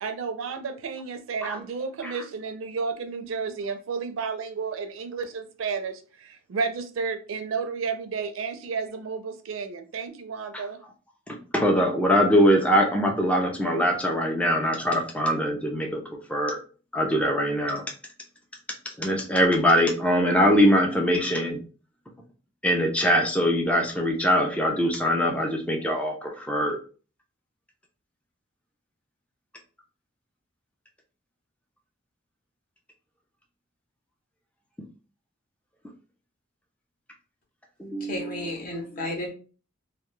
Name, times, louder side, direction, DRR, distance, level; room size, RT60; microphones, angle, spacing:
voice 1, 0.0-10.8, right 5 dB, 80° right, 0.4 m, -32 dB
voice 2, 11.3-16.0 16.3-16.6 16.9-17.8 19.0-21.6 22.6-26.8 37.8-38.5, equal, 5° left, 0.3 m, -22 dB
voice 3, 38.0-39.3, left 2 dB, 45° left, 0.8 m, -32 dB
2.2 x 2.1 x 2.9 m
head